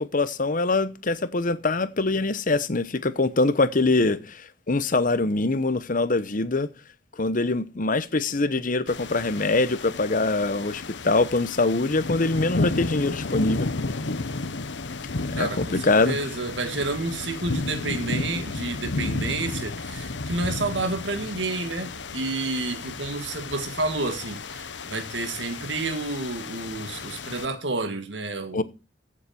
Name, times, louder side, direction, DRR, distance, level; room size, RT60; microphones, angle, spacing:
voice 1, 0.0-6.7 7.2-13.7 15.4-16.2 28.5-28.6, left 3 dB, 50° left, 0.9 m, -24 dB
sound 1, 8.9-27.5, left 3 dB, 85° left, 1.0 m, -33 dB
voice 2, 15.4-28.6, right 3 dB, 85° right, 1.9 m, -30 dB
15.5 x 7.3 x 4.3 m
head